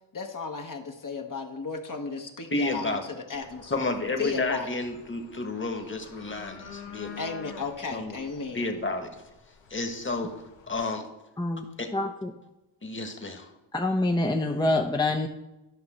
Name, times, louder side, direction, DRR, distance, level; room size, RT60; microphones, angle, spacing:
voice 1, 0.1-4.7 7.2-8.7, left 4 dB, 45° left, 3 dB, 1.3 m, -35 dB
voice 2, 2.5-3.0 3.7-7.2 7.9-8.2 8.5-9.1 9.7-10.3 10.7-11.1 11.8-11.9 12.8-13.5, left 2 dB, 25° left, 6 dB, 1.6 m, -31 dB
sound 1, 3.3-10.8, left 6 dB, 85° left, 1.2 m, -48 dB
voice 3, 11.9-12.3 13.7-15.3, left 2 dB, 10° left, 3 dB, 0.8 m, -26 dB
11.5 x 5.6 x 4.3 m, 0.97 s
cardioid pair, 50°, 44 cm